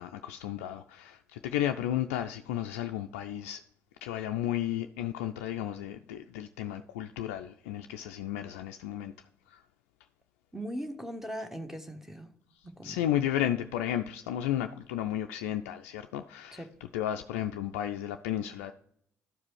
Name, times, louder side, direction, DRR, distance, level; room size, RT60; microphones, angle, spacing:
voice 1, 0.0-3.6 4.0-9.1 9.5-9.6 12.8-18.7, left 11 dB, 75° left, 0.4 m, -33 dB
voice 2, 10.5-12.3 12.8-13.0 16.5-16.7, equal, 5° right, 1.3 m, -39 dB
12.0 x 4.8 x 4.7 m
figure-of-eight pair, 45°, 7 cm